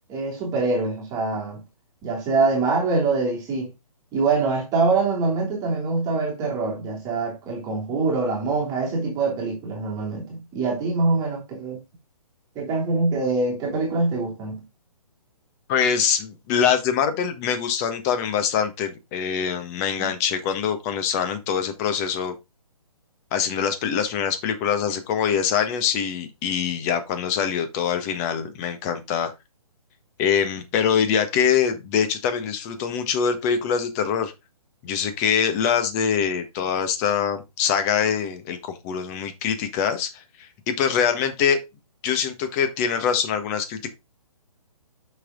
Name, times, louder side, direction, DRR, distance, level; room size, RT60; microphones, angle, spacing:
voice 1, 0.1-1.6 2.0-3.7 4.1-11.8 12.5-14.6 20.0-20.1, right 3 dB, 20° right, 2.9 m, -24 dB
voice 2, 15.7-22.3 23.3-29.3 30.2-34.3 34.8-41.6 42.0-43.9, left 7 dB, 25° left, 1.4 m, -24 dB
6.6 x 5.9 x 3.7 m
hypercardioid pair, 145°, 19 cm